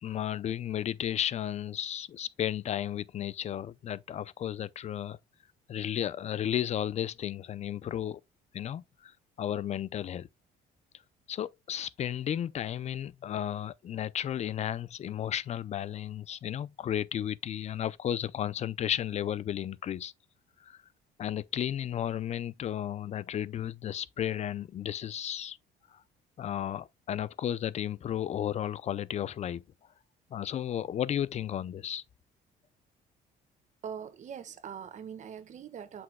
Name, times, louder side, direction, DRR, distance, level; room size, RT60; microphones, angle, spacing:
voice 1, 0.0-5.2 5.7-8.2 8.5-9.1 9.4-10.3 11.3-20.1 20.6-20.8 21.2-25.6 26.4-29.6 30.3-32.0, left 10 dB, 40° left, 0.5 m, -33 dB
voice 2, 33.8-36.0, right 8 dB, 45° right, 1.3 m, -42 dB
7.7 x 6.1 x 2.2 m
cardioid pair, 110°, 17 cm